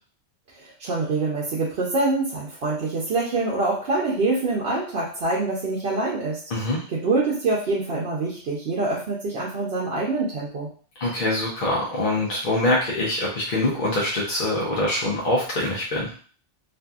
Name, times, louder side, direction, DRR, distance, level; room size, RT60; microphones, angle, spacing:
voice 1, 0.6-6.4 6.9-10.7, right 3 dB, 60° right, -4 dB, 0.8 m, -25 dB
voice 2, 6.5-6.8 11.0-16.1, left 1 dB, 55° left, -4 dB, 0.7 m, -24 dB
2.6 x 2.5 x 2.3 m, 0.42 s
omnidirectional pair, 1.2 m